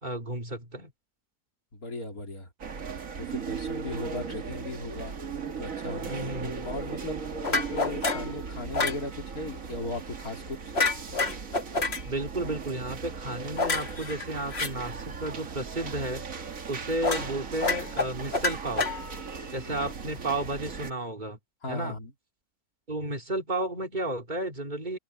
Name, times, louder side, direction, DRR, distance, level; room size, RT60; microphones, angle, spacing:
voice 1, 0.0-0.9 6.0-6.7 12.0-16.2 16.7-18.9 19.5-21.4 21.7-21.9 22.9-25.0, right 2 dB, 30° right, 3.1 m, -32 dB
voice 2, 1.7-2.5 3.1-5.2 5.6-10.7 19.7-19.9 21.6-22.1, left 2 dB, 65° left, 3.9 m, -37 dB
sound 1, 2.6-20.9, right 5 dB, 55° right, 2.0 m, -38 dB
sound 2, 7.4-8.3 8.7-9.0 10.7-12.0 13.6-14.7 17.0-17.3 17.6-19.3, left 3 dB, 40° left, 2.2 m, -28 dB
omnidirectional pair, 1.7 m